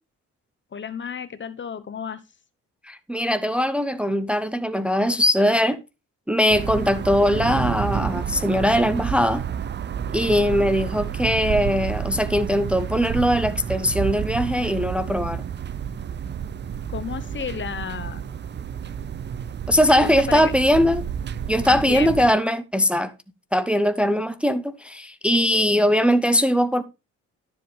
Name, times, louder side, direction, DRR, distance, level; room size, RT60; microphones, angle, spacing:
voice 1, 0.7-2.2 16.9-18.2 19.9-20.5 21.6-22.1, left 7 dB, 40° left, 1.0 m, -32 dB
voice 2, 2.8-5.8 6.3-9.5 10.1-15.4 19.7-21.0 21.5-23.1 23.5-26.8, equal, 5° right, 0.7 m, -21 dB
sound 1, 6.5-22.3, right 8 dB, 35° right, 0.5 m, -30 dB
12.0 x 7.6 x 3.4 m
cardioid pair, 90°, 30 cm